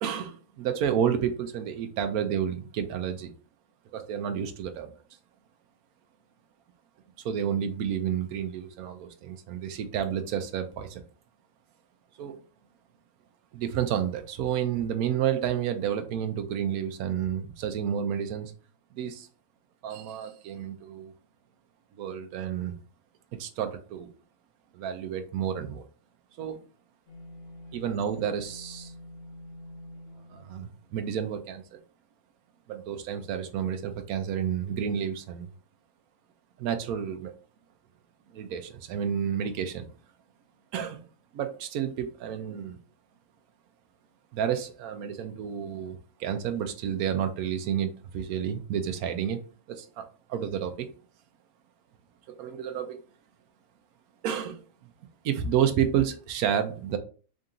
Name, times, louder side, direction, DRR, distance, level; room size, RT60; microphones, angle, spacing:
voice 1, 0.0-3.3 3.9-4.9 7.2-11.0 12.2-12.4 13.5-18.5 18.9-19.3 19.8-21.1 22.0-22.8 23.3-24.1 24.7-25.8 26.4-26.6 27.7-28.9 30.3-31.8 32.7-35.5 36.6-37.3 38.3-39.9 40.7-41.0 41.3-42.8 44.3-49.4 49.7-50.9 52.3-53.0 54.2-54.6 55.2-57.0, right 8 dB, 75° right, 8 dB, 1.1 m, -30 dB
sound 1, 27.1-31.3, left 1 dB, 80° left, 1.5 m, -47 dB
3.7 x 2.7 x 3.6 m, 0.38 s
omnidirectional pair, 1.6 m